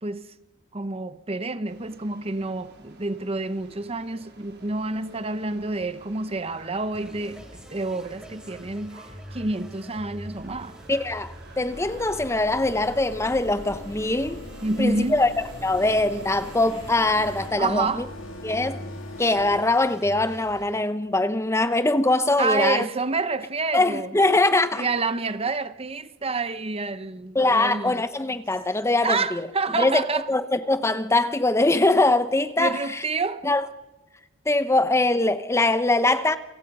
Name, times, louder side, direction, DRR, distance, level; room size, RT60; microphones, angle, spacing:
voice 1, 0.7-10.8 14.6-15.2 17.6-18.1 22.4-24.2 24.7-28.0 29.0-30.3 32.6-33.4, right 3 dB, 30° right, 0.9 m, -28 dB
sound 1, 1.7-17.5, right 1 dB, 55° right, 4.2 m, -48 dB
sound 2, 6.9-20.7, equal, 5° right, 3.5 m, -44 dB
voice 2, 10.9-14.4 14.8-15.3 15.6-18.0 18.4-18.8 19.2-22.8 23.7-24.8 27.3-29.5 29.7-33.0 33.4-33.6 34.5-36.4, left 2 dB, 15° left, 0.9 m, -22 dB
sound 3, 11.7-19.6, left 2 dB, 70° left, 1.9 m, -42 dB
29.5 x 24.0 x 5.5 m
head